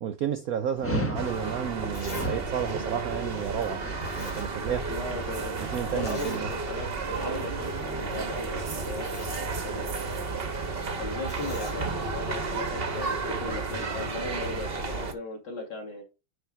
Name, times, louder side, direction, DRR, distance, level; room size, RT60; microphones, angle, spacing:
voice 1, 0.0-3.8 4.1-4.9 5.6-6.5, right 9 dB, 75° right, 0.8 m, -32 dB
Dog, 0.8-6.2, equal, 20° left, 0.3 m, -37 dB
sound 1, 1.1-15.1, right 3 dB, 40° right, 0.9 m, -32 dB
Zipper (clothing), 1.9-2.3 2.7-2.8 3.6-3.7 4.0-5.0 5.2-5.3 6.0-6.4 6.9-7.0 7.3-7.5 8.4-8.5 8.8-9.4 11.3-11.8 12.7-12.8, left 2 dB, 80° left, 4.2 m, -43 dB
voice 2, 4.9-5.6 5.9-10.2 11.0-16.0, left 2 dB, 50° left, 2.8 m, -37 dB
9.8 x 3.5 x 4.7 m
omnidirectional pair, 2.4 m